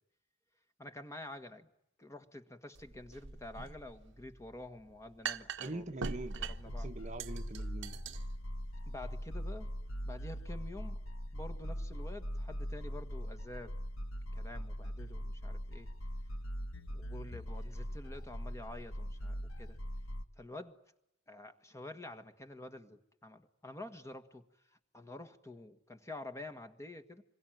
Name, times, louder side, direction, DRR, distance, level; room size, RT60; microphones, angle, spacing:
voice 1, 0.8-1.7 2.0-6.1 6.4-6.9 8.9-9.7 10.0-11.0 11.3-13.8 14.3-15.9 16.9-19.8 20.4-20.8 21.3-24.4 24.9-27.2, left 2 dB, 15° left, 8 dB, 1.6 m, -48 dB
sound 1, 2.7-10.5, right 5 dB, 65° right, 1.2 m, -44 dB
voice 2, 5.6-6.4 6.8-8.0, right 2 dB, 35° right, 7 dB, 1.1 m, -43 dB
sound 2, 6.3-20.2, equal, 90° left, 1.6 m, -41 dB
27.0 x 22.5 x 9.1 m, 0.83 s
head